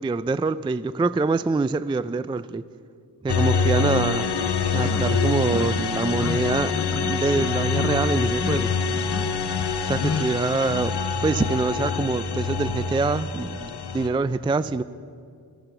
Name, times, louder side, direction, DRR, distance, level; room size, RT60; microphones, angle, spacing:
voice 1, 0.0-2.6 3.2-4.3 4.7-8.8 9.8-11.0 11.2-14.8, right 3 dB, 15° right, 16 dB, 0.3 m, -25 dB
sound 1, 3.3-14.1, left 4 dB, 65° left, 0.9 m, -25 dB
sound 2, 3.8-3.9 4.4-4.5 4.8-5.1 5.5-5.7 6.1-6.4 6.7-7.0 7.3-7.9 8.3-8.6 8.9-9.3 9.6-10.3, left 5 dB, 35° left, 0.8 m, -31 dB
14.5 x 11.5 x 6.8 m, 2.3 s
cardioid pair, 45°, 43 cm